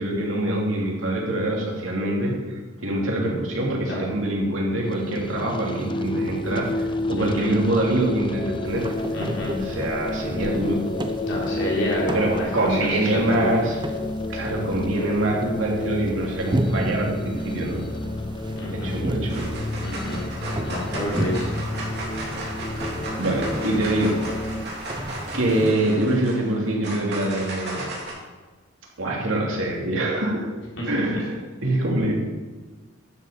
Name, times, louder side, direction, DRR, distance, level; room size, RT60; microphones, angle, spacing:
voice 1, 0.0-8.8 9.6-10.8 12.1-13.7 14.3-17.8 18.7-19.5 23.2-24.2 25.3-28.0 29.0-30.5 30.8-32.1, right 1 dB, 85° right, -2 dB, 2.9 m, -25 dB
sound 1, 4.8-24.7, left 2 dB, 25° left, 0.5 m, -31 dB
voice 2, 7.2-7.6 9.1-9.5 11.2-13.6 18.6-18.9 19.8-20.2 20.6-21.5 30.8-30.9, left 1 dB, 70° left, -5 dB, 4.2 m, -28 dB
sound 2, 8.6-25.7, right 1 dB, 25° right, 0.8 m, -34 dB
sound 3, 18.6-19.0 19.3-28.1, right 2 dB, 55° right, 3.2 m, -35 dB
12.0 x 7.8 x 5.2 m, 1.3 s
head